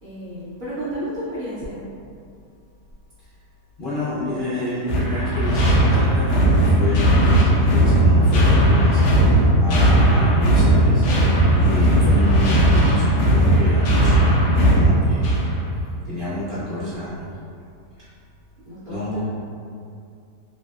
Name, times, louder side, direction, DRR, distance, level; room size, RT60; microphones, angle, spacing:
voice 1, 0.0-1.8 18.7-19.2, equal, 75° right, -11 dB, 0.4 m, -32 dB
voice 2, 3.8-9.0 9.6-11.0 11.5-15.3 16.1-17.3 18.9-19.2, left 1 dB, 60° left, -12 dB, 0.5 m, -29 dB
sound 1, 4.9-15.6, right 1 dB, 85° left, 1.2 m, -16 dB
3.2 x 2.7 x 2.3 m, 2.4 s
omnidirectional pair, 1.8 m